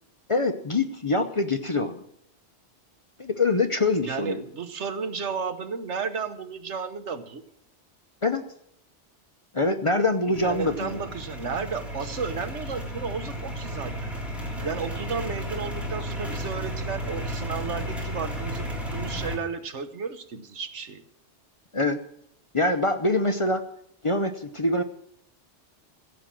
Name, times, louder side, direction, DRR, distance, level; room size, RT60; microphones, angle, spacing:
voice 1, 0.3-2.0 3.2-4.4 8.2-8.4 9.5-11.0 14.6-14.7 21.7-22.0 22.5-23.6 24.0-24.8, left 2 dB, 30° left, 7 dB, 0.7 m, -24 dB
voice 2, 4.0-7.4 10.3-14.1 14.6-21.0, right 5 dB, 80° right, 10 dB, 1.4 m, -33 dB
sound 1, 10.3-19.3, equal, ahead, 3.4 m, -33 dB
15.5 x 7.8 x 7.4 m, 0.73 s
omnidirectional pair, 1.2 m